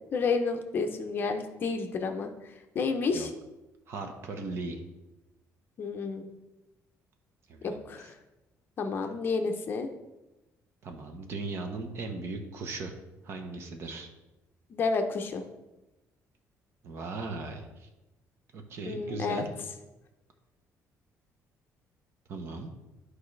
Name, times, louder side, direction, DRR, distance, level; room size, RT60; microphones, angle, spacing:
voice 1, 0.1-3.3 5.8-6.3 7.6-8.2 8.8-9.9 14.7-15.4 18.9-19.4, left 4 dB, 35° left, 5 dB, 0.6 m, -30 dB
voice 2, 3.9-4.8 7.5-8.1 10.8-12.9 13.2-14.1 16.8-17.9 18.5-19.5 22.3-22.7, right 3 dB, 45° right, 5 dB, 0.9 m, -38 dB
11.0 x 4.8 x 3.2 m, 1.0 s
cardioid pair, 180°, 6 cm